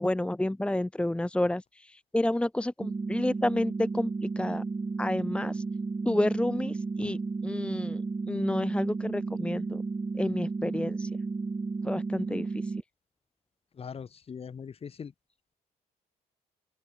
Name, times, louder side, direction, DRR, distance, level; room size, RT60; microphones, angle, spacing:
voice 1, 0.0-4.6 5.0-5.6 6.0-8.0 8.3-9.8 10.2-11.1 11.8-12.6, left 1 dB, 5° left, 1.1 m, -30 dB
sound 1, 2.8-12.8, right 4 dB, 25° right, 7.7 m, -33 dB
voice 2, 13.8-15.1, left 6 dB, 40° left, 4.4 m, -41 dB
open air
cardioid pair, 130°, 15 cm